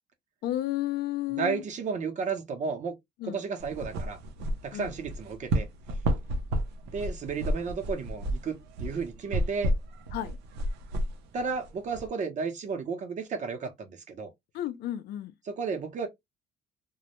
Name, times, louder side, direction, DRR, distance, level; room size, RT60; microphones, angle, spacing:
voice 1, 0.4-1.6 3.2-3.4 4.7-4.9 10.1-10.4 14.5-15.3, left 13 dB, 70° left, 0.5 m, -32 dB
voice 2, 1.3-2.9 3.2-4.2 4.6-5.7 6.9-9.7 11.3-14.3 15.5-16.1, right 5 dB, 45° right, 0.7 m, -33 dB
sound 1, 3.6-12.1, right 1 dB, 85° right, 0.6 m, -32 dB
2.2 x 2.0 x 2.9 m
cardioid pair, 110°, 17 cm